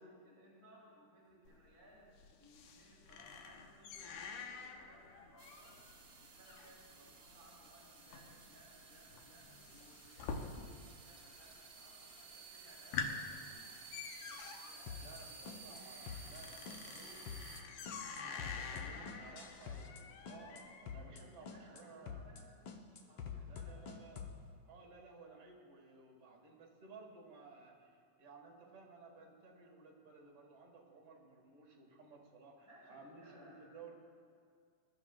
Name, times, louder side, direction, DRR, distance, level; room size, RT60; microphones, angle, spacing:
voice 1, 0.0-2.1 2.4-5.8 6.2-13.8 14.3-17.2 18.2-19.8 20.9-22.5 23.0-23.7 32.7-33.9, right 1 dB, 20° right, -7 dB, 2.8 m, -63 dB
sound 1, 1.5-11.0 11.3-11.9 12.3-12.4 12.7-21.0, left 5 dB, 80° left, 2.2 m, -47 dB
sound 2, 5.4-17.6, right 4 dB, 75° right, 0.8 m, -55 dB
sound 3, 14.9-15.2 15.5-15.8 16.1-16.4 16.7-17.0 17.3-17.6 17.9-20.0 20.3-20.6 20.9-21.2 21.5-21.8 22.1-22.4 22.7-24.4, left 7 dB, 65° left, 1.3 m, -46 dB
voice 2, 15.0-17.3 18.3-22.2 23.4-24.3 24.6-33.9, right 4 dB, 55° right, 0 dB, 2.4 m, -57 dB
22.5 x 12.0 x 2.4 m, 2.3 s
omnidirectional pair, 3.4 m